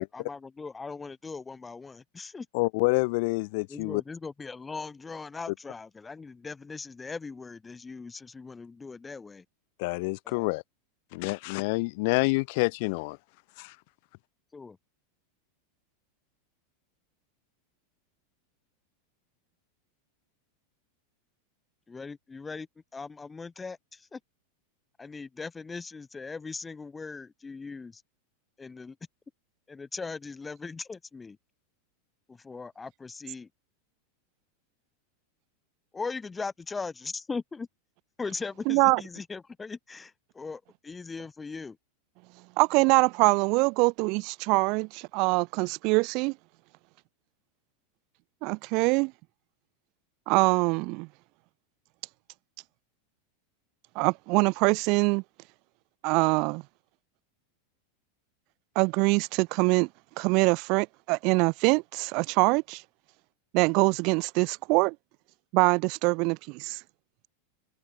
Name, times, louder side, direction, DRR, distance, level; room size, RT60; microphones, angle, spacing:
voice 1, 0.0-2.5 3.7-9.4 10.3-10.5 14.5-14.8 21.9-22.7 22.9-24.2 25.0-28.0 28.6-28.9 29.7-31.4 32.3-33.5 35.9-37.7 38.2-41.8, left 4 dB, 15° left, 3.1 m, -39 dB
voice 2, 2.5-4.0 9.8-10.6 11.1-13.2 13.6-13.8, left 28 dB, 60° left, 4.0 m, -27 dB
voice 3, 38.7-39.0 42.6-46.3 48.4-49.1 50.3-51.1 53.9-55.2 56.0-56.6 58.7-59.9 60.2-62.8 63.5-64.9 65.5-66.8, right 29 dB, 55° right, 1.3 m, -24 dB
hypercardioid pair, 95°, 0 cm